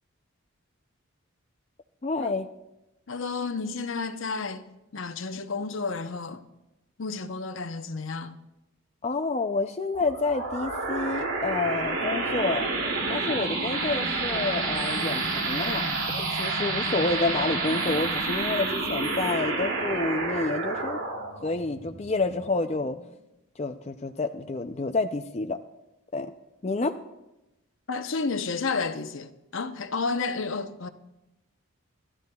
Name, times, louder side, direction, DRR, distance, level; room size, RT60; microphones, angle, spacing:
voice 1, 2.0-2.5 9.0-12.6 13.1-21.0 21.4-23.0 23.6-25.6 26.1-26.3 26.6-26.9, left 3 dB, 30° left, 0.4 m, -29 dB
voice 2, 3.1-4.7 4.9-6.4 7.0-8.4 27.9-30.9, left 4 dB, 70° left, 0.8 m, -31 dB
sound 1, 9.9-23.0, right 3 dB, 80° right, 2.5 m, -29 dB
25.5 x 12.5 x 2.3 m
head